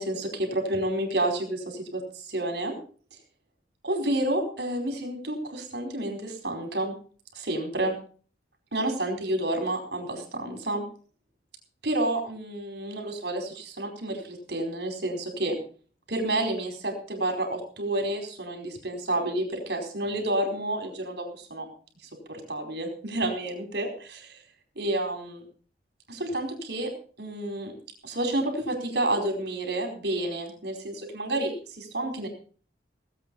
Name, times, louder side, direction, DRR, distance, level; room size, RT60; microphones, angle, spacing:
voice 1, 0.0-2.7 3.8-6.9 7.3-7.9 8.7-10.8 11.8-15.6 16.1-21.7 22.3-24.4 24.8-25.4 26.1-26.9 27.2-27.7 28.0-32.3, right 1 dB, 65° right, 3 dB, 4.7 m, -30 dB
18.5 x 8.7 x 5.5 m, 0.42 s
head